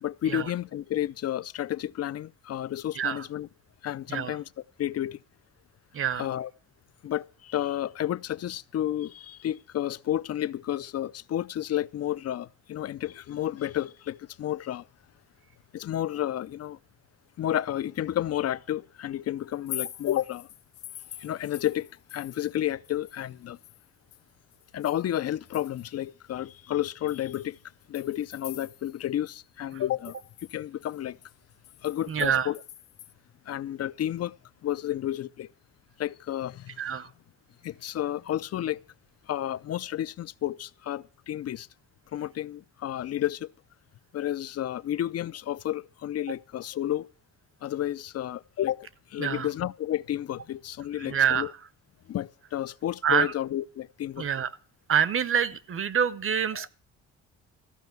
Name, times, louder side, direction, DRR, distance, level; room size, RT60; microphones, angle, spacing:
voice 1, 0.0-3.5 3.8-5.2 6.1-6.5 7.0-14.9 15.7-16.8 17.4-20.5 21.2-23.6 24.7-27.6 27.9-30.2 30.5-31.2 31.8-32.6 33.5-34.3 34.6-35.5 36.0-37.0 37.6-38.8 39.3-41.7 42.1-43.5 44.1-47.1 47.6-51.5 52.1-54.3 56.5-56.7, left 12 dB, 55° left, 0.6 m, -31 dB
sound 1, 19.5-22.6 22.8-26.0 26.5-26.6 27.1-29.0 29.3-29.4 29.7-33.1, left 12 dB, 80° left, 1.3 m, -45 dB
voice 2, 32.1-32.5 36.8-37.1 49.2-49.5 51.0-51.4 53.0-53.3 54.2-54.5 54.9-56.7, right 8 dB, 45° right, 0.9 m, -26 dB
14.5 x 5.6 x 9.3 m
cardioid pair, 90°, 30 cm